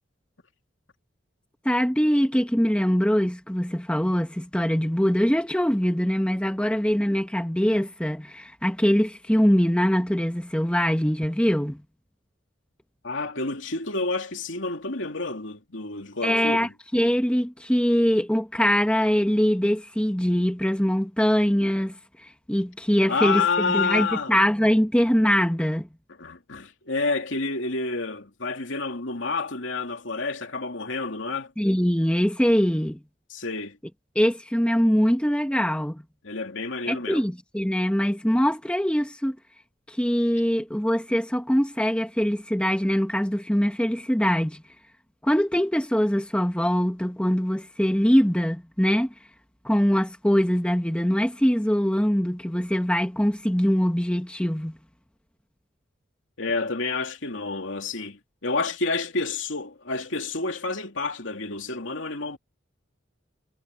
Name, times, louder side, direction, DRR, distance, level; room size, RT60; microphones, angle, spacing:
voice 1, 1.6-11.8 16.2-25.9 31.6-33.0 34.1-36.0 36.9-39.4 39.9-44.6 45.2-49.1 49.6-54.8, equal, 5° left, 1.2 m, -23 dB
voice 2, 13.0-16.7 23.1-24.3 26.1-31.5 33.3-33.8 36.2-37.2 56.4-62.4, left 3 dB, 80° left, 2.8 m, -29 dB
head